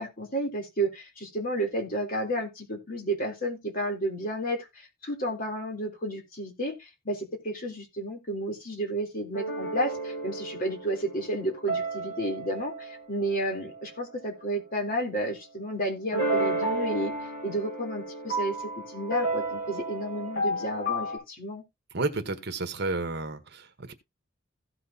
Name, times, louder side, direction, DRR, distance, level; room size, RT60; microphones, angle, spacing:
voice 1, 0.0-4.7 5.0-17.1 17.4-21.6, right 1 dB, 45° left, 3.5 m, -32 dB
sound 1, 9.3-13.9 16.1-21.2, right 2 dB, 65° left, 7.3 m, -32 dB
voice 2, 21.9-23.9, right 3 dB, 55° right, 1.3 m, -31 dB
16.0 x 6.1 x 2.9 m
head